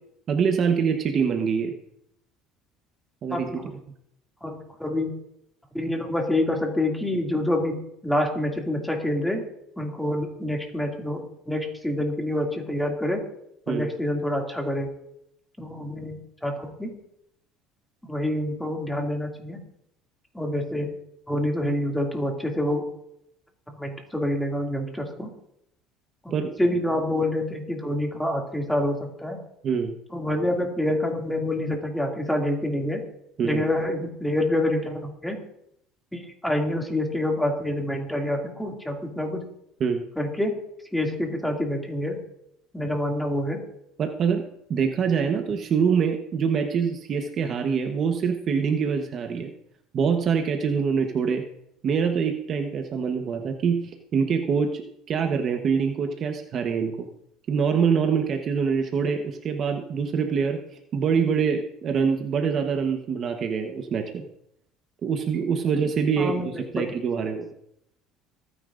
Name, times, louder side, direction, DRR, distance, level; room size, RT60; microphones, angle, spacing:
voice 1, 0.3-1.7 3.2-3.6 13.7-13.9 26.3-26.5 29.6-30.0 33.4-33.6 39.8-40.0 44.0-44.4 44.7-49.5 49.9-51.4 51.8-53.8 54.1-54.8 55.1-57.1 57.5-60.6 60.9-64.2 65.0-67.5, right 6 dB, 40° right, 4 dB, 1.1 m, -24 dB
voice 2, 3.3-3.6 4.4-5.1 5.7-7.8 8.0-9.4 9.8-13.2 13.7-14.9 15.6-16.9 18.1-19.6 20.3-20.9 21.3-22.8 23.8-25.3 26.6-29.4 30.1-33.0 33.4-35.4 36.1-39.4 40.2-40.6 40.9-42.2 42.7-43.6 66.2-66.5, left 1 dB, 5° left, 1 dB, 2.4 m, -27 dB
26.0 x 9.9 x 2.6 m, 0.77 s
cardioid pair, 120°, 0 cm